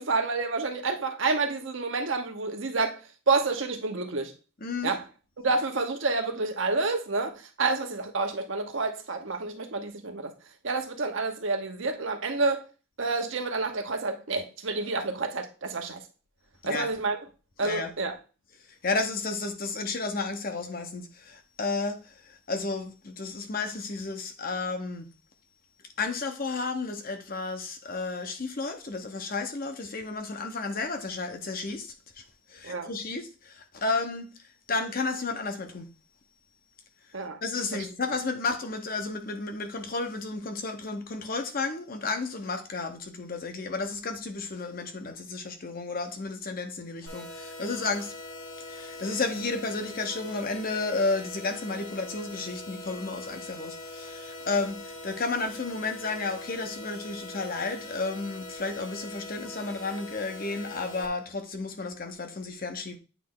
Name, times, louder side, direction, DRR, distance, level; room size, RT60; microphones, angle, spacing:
voice 1, 0.0-3.0 3.3-4.3 4.8-5.0 5.4-10.3 10.6-12.6 13.0-16.0 16.6-17.2 17.6-18.2 32.6-32.9 37.1-37.4 37.7-37.9, right 3 dB, 65° right, 1.0 m, -29 dB
voice 2, 4.6-5.0 16.6-16.9 17.6-17.9 18.8-25.1 26.0-32.2 32.5-34.3 34.7-35.9 37.4-48.1 48.7-63.0, left 3 dB, 45° left, 0.9 m, -32 dB
sound 1, 47.1-61.1, left 2 dB, 65° left, 1.2 m, -42 dB
8.3 x 3.2 x 3.8 m
head